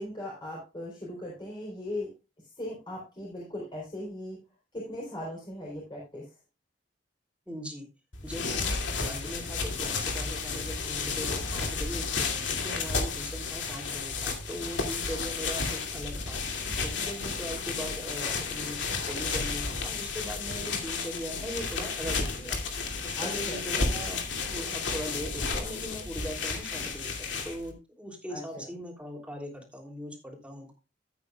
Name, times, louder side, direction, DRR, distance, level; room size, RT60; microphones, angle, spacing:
voice 1, 0.0-2.1 2.6-4.4 4.7-6.3 11.6-11.7 17.6-17.7 23.1-23.6 28.3-28.7, left 1 dB, 25° left, -4 dB, 3.8 m, -38 dB
voice 2, 7.5-7.9 8.2-8.7 9.0-22.6 23.0-24.2 24.5-30.7, equal, 5° right, 1 dB, 3.1 m, -40 dB
sound 1, 8.1-27.7, left 4 dB, 90° left, 2.5 m, -32 dB
15.0 x 8.8 x 2.3 m, 0.28 s
head